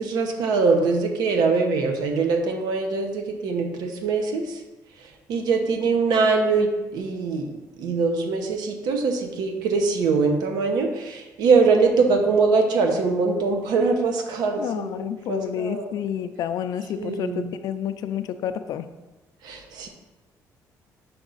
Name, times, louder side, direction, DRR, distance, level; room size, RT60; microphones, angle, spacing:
voice 1, 0.0-4.6 5.3-7.5 7.8-15.9 17.0-17.4 19.4-19.9, right 4 dB, 85° right, 4 dB, 0.9 m, -22 dB
voice 2, 14.6-18.9, left 9 dB, 65° left, 10 dB, 0.4 m, -29 dB
6.0 x 5.3 x 4.0 m, 1.1 s
cardioid pair, 150°, 7 cm